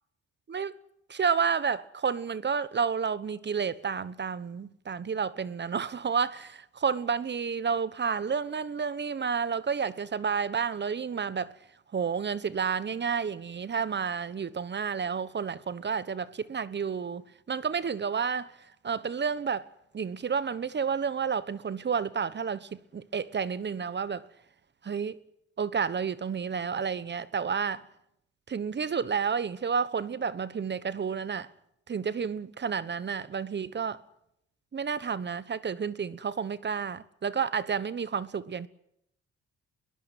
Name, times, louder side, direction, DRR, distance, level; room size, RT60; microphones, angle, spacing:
voice 1, 1.1-11.5 11.9-18.5 18.8-24.3 24.8-25.2 25.6-27.9 28.5-31.5 31.9-34.0 34.7-38.7, right 6 dB, 35° right, 1.1 m, -30 dB
22.0 x 18.5 x 9.3 m
cardioid pair, 90°, 30 cm